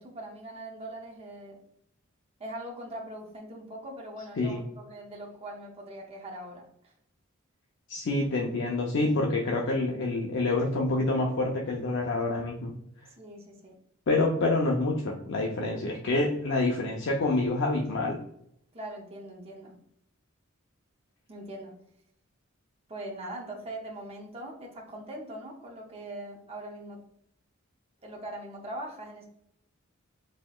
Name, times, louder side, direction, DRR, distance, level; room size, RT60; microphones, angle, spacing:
voice 1, 0.0-1.6 2.4-6.9 13.2-13.7 18.7-19.8 21.3-21.7 22.9-27.0 28.0-29.3, right 1 dB, 30° right, 0 dB, 0.7 m, -41 dB
voice 2, 7.9-12.7 14.1-18.2, left 2 dB, 60° left, 0 dB, 0.5 m, -27 dB
4.1 x 2.8 x 2.3 m, 0.73 s
head